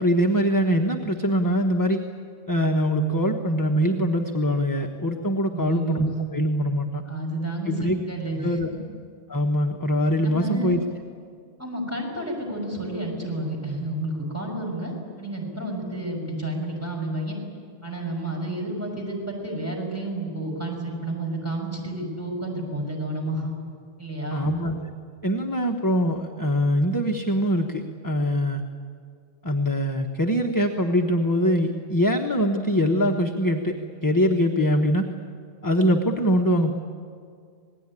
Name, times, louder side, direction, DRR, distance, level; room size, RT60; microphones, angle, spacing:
voice 1, 0.0-2.0 2.5-7.0 7.7-8.0 8.4-8.7 9.3-10.8 24.3-24.9 25.2-28.6 29.4-35.1 35.6-36.7, equal, 20° left, 2 dB, 1.2 m, -23 dB
voice 2, 5.5-6.2 7.0-8.8 10.2-10.8 11.6-17.4 17.8-23.5 24.0-24.5, right 1 dB, 15° right, -1 dB, 6.3 m, -30 dB
27.0 x 19.5 x 9.9 m, 2.2 s
omnidirectional pair, 1.1 m